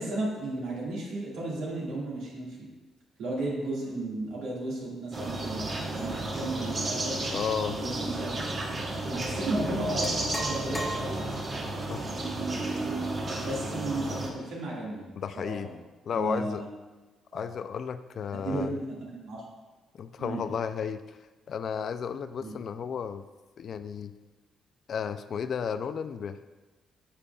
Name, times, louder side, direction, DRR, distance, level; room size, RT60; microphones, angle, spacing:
voice 1, 0.0-2.7 3.2-5.7 6.0-7.2 7.7-8.3 9.0-11.3 13.3-15.1 15.3-15.7 16.1-16.6 17.3-17.5 18.3-19.4 20.2-20.4 22.4-22.5, right 2 dB, 90° right, -4 dB, 1.8 m, -34 dB
sound 1, 5.1-14.3, right 2 dB, 40° right, 1.0 m, -32 dB
voice 2, 7.3-7.8 11.9-12.0 15.2-15.7 16.0-16.6 17.3-18.7 19.9-21.2 21.5-23.2 23.6-24.1 24.9-26.4, left 7 dB, 60° left, 11 dB, 0.3 m, -33 dB
sound 2, 9.2-9.4 10.0-11.5, equal, 15° left, 1.1 m, -37 dB
8.4 x 5.2 x 2.3 m, 1.2 s
cardioid pair, 90°, 0 cm